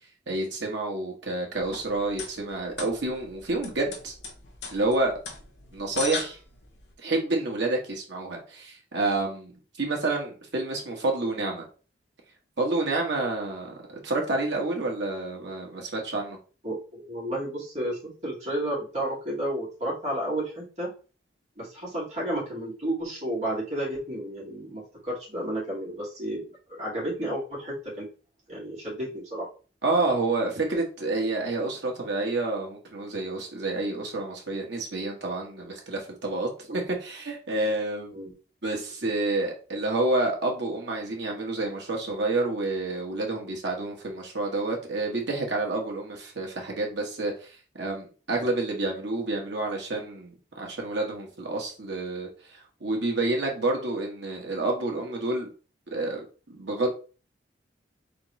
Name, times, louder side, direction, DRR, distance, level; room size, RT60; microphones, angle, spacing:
voice 1, 0.3-4.1 4.7-5.1 5.7-6.4 7.0-9.5 9.8-11.7 12.6-16.4 29.8-38.1 38.6-55.5 55.9-56.2 56.5-56.9, right 2 dB, 80° right, 1.4 m, -29 dB
sound 1, 1.5-6.9, left 4 dB, 80° left, 1.2 m, -39 dB
voice 2, 16.6-20.9 21.6-26.4 26.7-28.0 28.5-29.5 38.1-38.3, right 1 dB, 40° right, 2.6 m, -32 dB
4.2 x 3.8 x 3.1 m
head